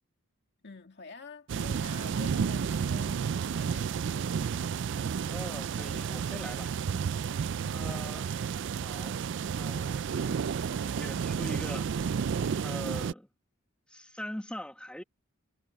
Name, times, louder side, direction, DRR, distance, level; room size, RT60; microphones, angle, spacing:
voice 1, 0.6-4.4 7.5-8.1, left 4 dB, 55° left, 2.3 m, -49 dB
sound 1, 1.5-13.1, right 6 dB, 60° right, 0.4 m, -31 dB
voice 2, 5.3-6.7 7.7-8.3 8.8-9.2 9.5-11.9 12.6-13.3 13.9-15.0, equal, 5° left, 1.1 m, -42 dB
head